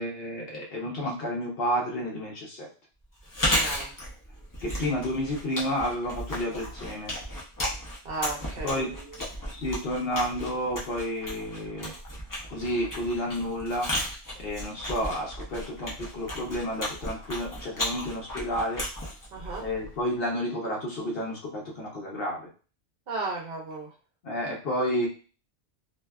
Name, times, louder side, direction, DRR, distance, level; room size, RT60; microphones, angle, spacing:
voice 1, 0.0-2.7 4.6-7.2 8.6-8.9 9.5-11.9 12.5-13.9 14.4-18.8 19.6-22.5 24.2-25.1, equal, 60° left, -1 dB, 0.9 m, -30 dB
Chewing mastication, 3.2-20.0, equal, 25° left, 0.5 m, -34 dB
voice 2, 3.4-4.0 8.0-9.2 19.3-19.7 23.1-23.9, right 3 dB, 60° right, -2 dB, 0.9 m, -35 dB
2.6 x 2.3 x 2.2 m, 0.36 s
omnidirectional pair, 1.2 m